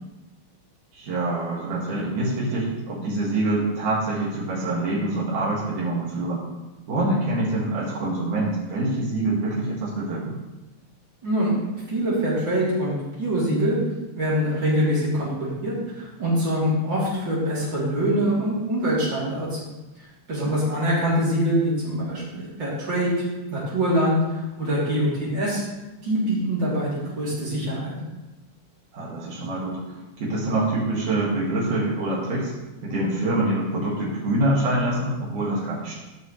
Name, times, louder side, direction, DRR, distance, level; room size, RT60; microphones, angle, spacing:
voice 1, 0.9-6.5 6.9-10.4 20.4-20.7 28.9-32.5 32.8-36.0, right 2 dB, 90° right, -7 dB, 3.5 m, -25 dB
voice 2, 11.2-11.5 11.9-13.8 14.1-19.6 20.3-23.2 23.5-25.6 26.0-27.9, equal, 35° right, -8 dB, 3.6 m, -24 dB
14.5 x 6.0 x 3.2 m, 1.1 s
omnidirectional pair, 3.5 m